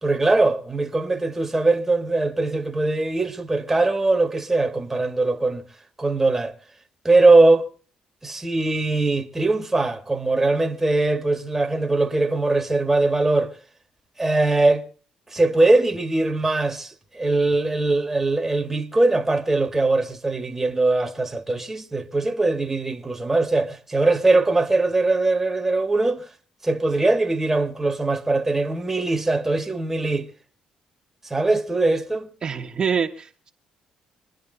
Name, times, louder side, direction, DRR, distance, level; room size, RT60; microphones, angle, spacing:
voice 1, 0.0-5.6 6.0-6.5 7.0-7.6 8.2-13.5 14.2-14.8 15.3-26.2 26.6-30.3 31.3-32.3, right 2 dB, 15° right, 1.9 m, -21 dB
voice 2, 32.4-33.5, right 6 dB, 40° right, 1.6 m, -25 dB
25.5 x 10.5 x 4.0 m
cardioid pair, 85°, 2 cm